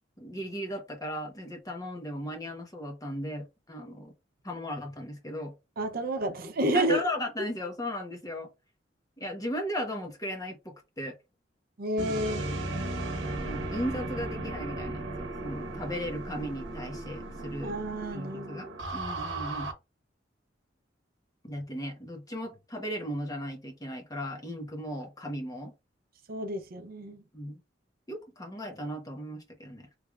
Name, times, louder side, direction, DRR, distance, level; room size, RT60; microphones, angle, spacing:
voice 1, 0.2-4.1 4.4-5.5 6.7-8.5 9.2-10.6 11.0-11.1 13.2-17.7 18.1-19.7 21.4-25.7 27.3-27.6 28.1-29.9, equal, 20° left, 1.0 m, -36 dB
voice 2, 5.8-7.0 11.8-12.5 17.6-18.8 26.3-27.2, right 1 dB, 55° right, 0.6 m, -30 dB
sound 1, 12.0-19.7, right 2 dB, 75° right, 0.9 m, -36 dB
3.3 x 3.2 x 2.3 m
head